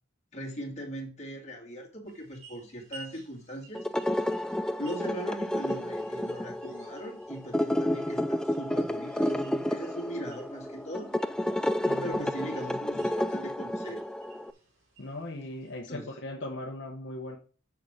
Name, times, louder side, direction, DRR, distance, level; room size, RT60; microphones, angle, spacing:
voice 1, 0.3-3.9 4.8-11.1 12.0-14.0 15.9-16.2, equal, 35° left, 2.2 m, -39 dB
sound 1, 2.0-15.8, right 3 dB, 85° right, 3.0 m, -56 dB
sound 2, 3.7-14.5, left 1 dB, 5° left, 0.3 m, -31 dB
voice 2, 11.9-12.3 15.0-17.4, left 1 dB, 65° left, 1.0 m, -38 dB
6.7 x 6.0 x 4.9 m
head